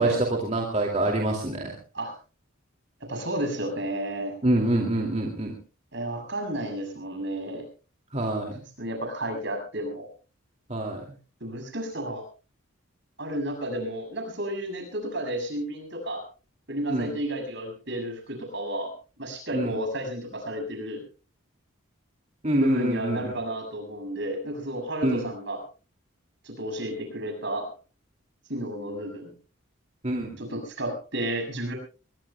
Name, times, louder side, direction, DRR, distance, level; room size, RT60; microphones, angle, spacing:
voice 1, 0.0-1.6 4.4-5.5 8.1-8.5 10.7-11.0 16.9-17.1 19.5-19.7 22.4-23.3 25.0-25.2 30.0-30.3, right 1 dB, 35° right, 0 dB, 2.5 m, -25 dB
voice 2, 3.0-4.4 5.9-7.7 8.8-10.1 11.4-12.2 13.2-16.3 16.7-21.0 22.5-25.6 26.4-27.7 28.5-29.3 30.4-31.7, right 1 dB, 55° right, 5 dB, 7.1 m, -32 dB
23.0 x 22.0 x 2.3 m, 0.35 s
head